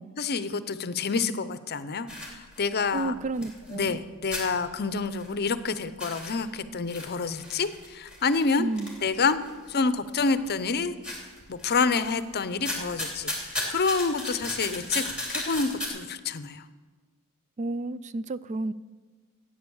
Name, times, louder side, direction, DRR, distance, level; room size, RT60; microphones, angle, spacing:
voice 1, 0.2-3.1 3.7-8.7 9.0-9.4 9.7-10.9 11.5-15.0 15.3-16.6, left 4 dB, 45° left, 13 dB, 0.7 m, -28 dB
sound 1, 2.1-4.0 4.3-5.6 5.9-9.7 10.2-10.7 11.0-12.2 12.5-15.9, left 1 dB, 5° right, 3.1 m, -36 dB
voice 2, 2.9-4.0 8.6-9.0 17.6-18.7, right 2 dB, 35° right, 16 dB, 0.3 m, -31 dB
14.0 x 9.1 x 7.1 m, 1.4 s
head